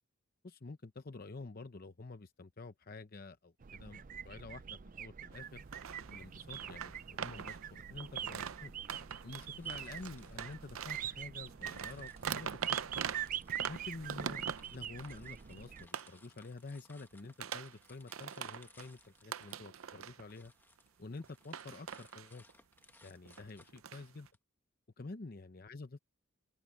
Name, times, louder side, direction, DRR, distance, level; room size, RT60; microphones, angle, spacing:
voice 1, 0.4-5.6 6.1-8.7 9.2-12.8 13.7-20.5 21.0-22.4 23.0-24.3 25.0-25.9, left 3 dB, 45° left, 0.7 m, -49 dB
sound 1, 3.6-15.9, right 9 dB, 40° right, 0.4 m, -44 dB
sound 2, 5.3-5.4 5.7-11.1 11.5-15.2 15.9-16.1 17.1-17.8 18.1-18.9 19.2-20.5 20.8-21.3 21.5-22.5 23.3-24.3, right 7 dB, 80° right, 0.6 m, -43 dB
sound 3, 9.0-11.3 11.7-24.4, left 2 dB, 10° left, 1.1 m, -65 dB
open air
head